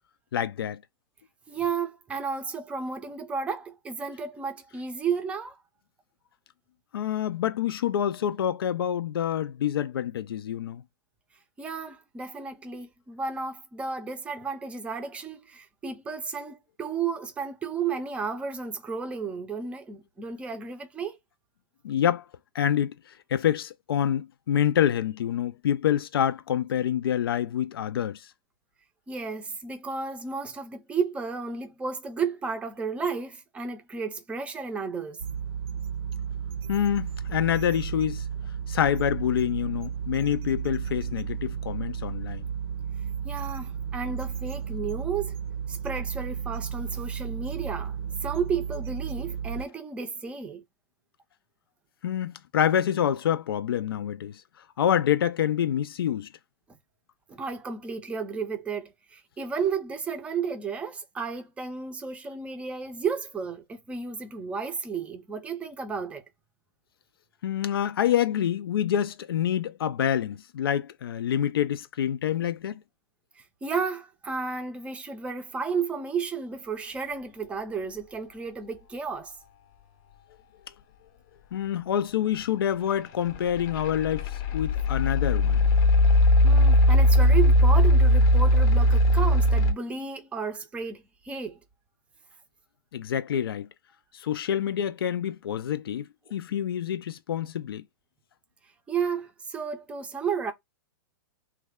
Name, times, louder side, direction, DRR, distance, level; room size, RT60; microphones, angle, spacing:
voice 1, 0.3-0.8 6.9-10.8 21.8-22.2 22.5-22.9 23.3-28.2 36.7-38.2 38.7-42.4 52.0-54.4 54.8-56.3 67.4-72.8 81.5-85.6 92.9-93.7 94.1-97.8, left 10 dB, 85° left, 0.4 m, -27 dB
voice 2, 1.5-5.6 11.6-21.2 29.1-35.2 43.2-45.4 45.7-48.0 48.2-50.6 57.3-66.2 73.4-79.3 86.4-91.6 98.9-100.5, right 5 dB, 10° right, 0.5 m, -33 dB
sound 1, 35.2-49.7, right 7 dB, 75° right, 0.6 m, -33 dB
sound 2, 83.3-89.7, left 1 dB, 30° left, 0.6 m, -19 dB
3.2 x 2.2 x 3.5 m
hypercardioid pair, 150°, 12 cm